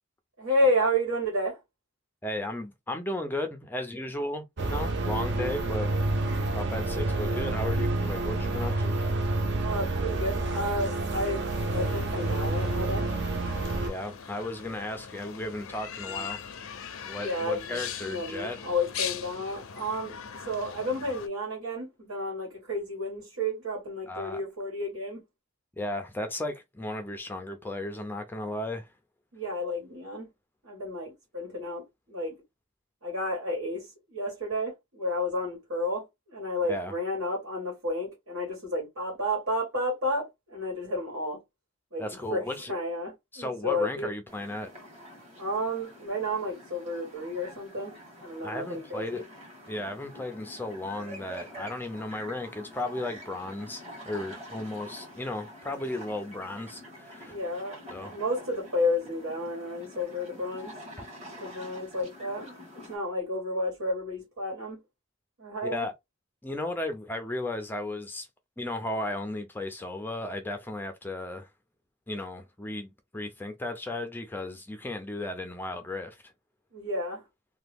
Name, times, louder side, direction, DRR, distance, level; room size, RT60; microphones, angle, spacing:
voice 1, 0.4-1.6 9.6-13.0 16.1-16.3 17.2-25.2 29.3-30.3 30.6-32.4 33.0-41.4 41.9-42.4 42.7-44.1 45.4-47.9 48.2-49.2 57.3-60.7 61.3-64.8 65.4-65.9 76.7-77.2, left 1 dB, 75° right, 1.7 m, -31 dB
voice 2, 2.2-5.9 6.5-9.0 13.8-16.4 17.0-18.6 24.1-24.4 25.8-28.9 36.7-36.9 42.0-42.7 43.3-44.7 48.4-49.2 49.7-57.4 57.9-58.1 65.6-65.9 66.4-68.3 68.6-71.5 72.1-76.3, left 1 dB, 10° left, 0.4 m, -35 dB
sound 1, 4.6-13.9, right 2 dB, 50° right, 0.6 m, -29 dB
sound 2, 11.5-21.3, left 8 dB, 65° left, 0.5 m, -40 dB
sound 3, 44.3-63.0, equal, 30° right, 1.4 m, -47 dB
2.9 x 2.2 x 3.3 m
head